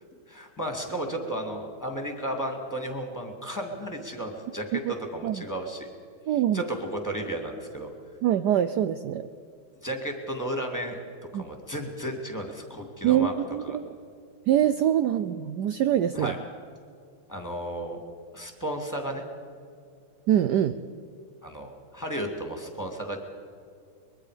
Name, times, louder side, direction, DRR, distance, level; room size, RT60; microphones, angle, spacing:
voice 1, 0.3-5.9 6.5-7.9 9.8-11.0 11.3-13.3 13.6-13.8 16.1-16.4 17.3-18.0 18.3-19.2 21.4-23.2, right 1 dB, 10° left, 3 dB, 2.4 m, -33 dB
voice 2, 6.3-6.6 8.2-9.3 11.3-11.4 13.0-13.9 14.5-16.3 20.3-20.8, right 11 dB, 75° right, 11 dB, 0.9 m, -24 dB
24.0 x 22.0 x 5.1 m, 2.3 s
omnidirectional pair, 2.4 m